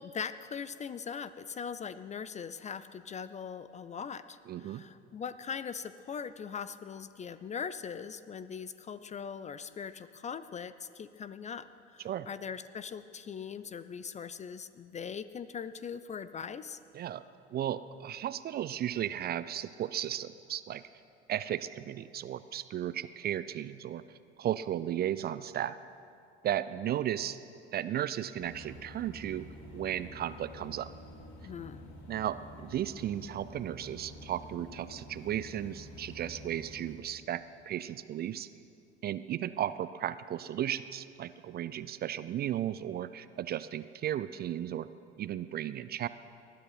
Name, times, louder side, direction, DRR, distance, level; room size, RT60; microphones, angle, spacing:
voice 1, 0.0-11.7 11.9-16.8 31.4-31.8, left 6 dB, 20° left, 14 dB, 0.5 m, -41 dB
voice 2, 4.5-4.8 12.0-12.3 16.9-17.2 17.5-20.8 21.3-24.0 24.4-25.8 26.4-27.4 27.7-29.5 29.7-30.9 32.1-38.5 39.0-44.9 45.2-46.1, right 11 dB, 30° right, 15 dB, 0.5 m, -35 dB
sound 1, 28.3-36.9, left 1 dB, 45° left, 3.0 m, -49 dB
19.5 x 12.0 x 5.8 m, 2.5 s
figure-of-eight pair, 70°, 34 cm